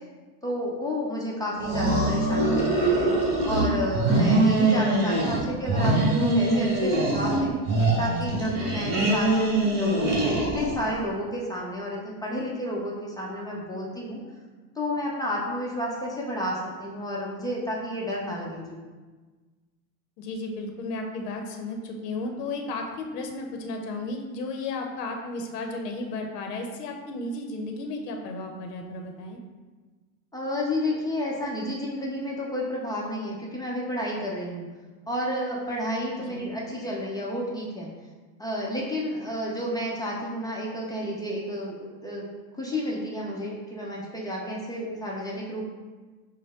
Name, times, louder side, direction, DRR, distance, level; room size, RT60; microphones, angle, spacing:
voice 1, 0.4-3.1 3.5-7.5 8.0-14.2 14.8-18.8 30.3-34.7 35.1-37.9 38.4-41.8 42.0-42.2 42.6-45.7, equal, 10° left, -4 dB, 0.6 m, -31 dB
sound 1, 1.6-3.7 3.9-5.4 5.7-7.4 7.7-10.9, right 2 dB, 35° right, 1.1 m, -23 dB
voice 2, 20.2-29.4 36.2-36.5, left 2 dB, 80° left, 3 dB, 0.7 m, -34 dB
5.1 x 2.1 x 3.5 m, 1.3 s
hypercardioid pair, 100°, 47 cm